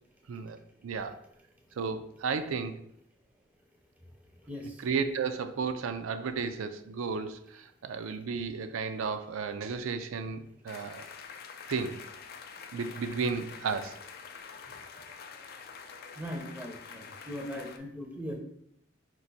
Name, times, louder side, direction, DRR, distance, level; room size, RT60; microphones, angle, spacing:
voice 1, 0.8-1.2 1.8-2.8 4.8-11.1 11.7-12.0 12.7-14.0, right 5 dB, 85° right, 8 dB, 0.4 m, -33 dB
voice 2, 4.5-4.8 14.7-14.8 16.2-18.4, equal, 5° right, 1 dB, 0.5 m, -39 dB
sound 1, 10.7-17.8, left 6 dB, 50° left, 0.4 m, -46 dB
4.6 x 2.5 x 4.0 m, 0.71 s
head